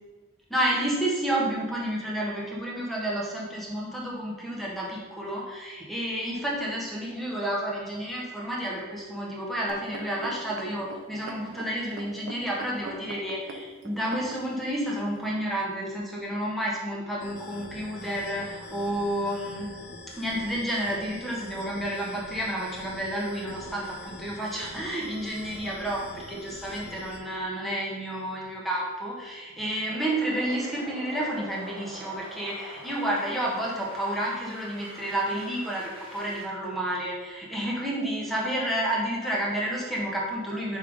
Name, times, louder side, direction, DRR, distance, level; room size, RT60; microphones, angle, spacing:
voice 1, 0.5-19.7 20.1-40.8, right 1 dB, ahead, -4 dB, 1.2 m, -30 dB
sound 1, 9.7-14.6 15.3-15.4, right 2 dB, 75° right, 0.6 m, -41 dB
sound 2, 17.2-27.2, left 3 dB, 60° left, 0.8 m, -44 dB
sound 3, 29.9-36.4, right 1 dB, 25° right, 1.1 m, -44 dB
5.6 x 3.7 x 4.7 m, 1.3 s
head